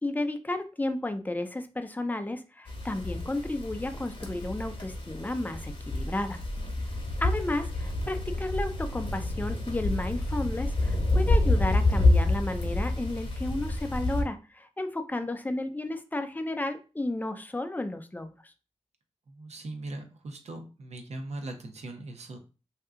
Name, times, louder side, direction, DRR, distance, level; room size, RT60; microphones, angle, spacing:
voice 1, 0.0-6.4 7.2-18.3, left 2 dB, 15° left, 8 dB, 0.5 m, -33 dB
sound 1, 2.7-14.2, left 2 dB, 45° left, 1.0 m, -28 dB
voice 2, 19.3-22.4, right 2 dB, 65° right, 5 dB, 0.8 m, -40 dB
2.7 x 2.3 x 3.6 m, 0.33 s
cardioid pair, 65°, 12 cm